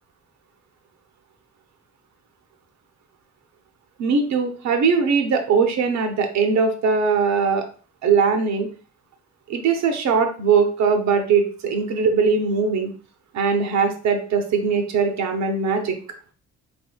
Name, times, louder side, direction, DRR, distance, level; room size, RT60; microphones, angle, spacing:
voice 1, 4.0-7.6 8.0-8.7 9.5-12.9 13.3-16.0, right 5 dB, 65° right, 6 dB, 0.8 m, -20 dB
3.7 x 3.5 x 2.3 m, 0.38 s
cardioid pair, 90°, 30 cm